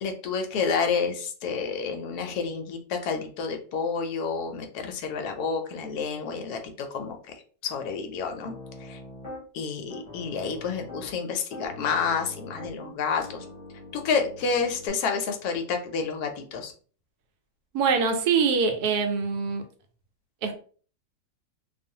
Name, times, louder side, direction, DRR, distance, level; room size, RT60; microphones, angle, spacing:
voice 1, 0.0-8.5 8.8-9.0 9.5-13.5 13.9-16.7, left 5 dB, 70° left, 5 dB, 1.0 m, -29 dB
Piano, 8.4-9.4 9.9-11.1 11.5-14.9, left 1 dB, 25° left, 0.8 m, -43 dB
voice 2, 17.7-19.6 20.4-20.6, right 5 dB, 70° right, 5 dB, 1.0 m, -24 dB
2.5 x 2.4 x 2.7 m, 0.42 s
omnidirectional pair, 1.8 m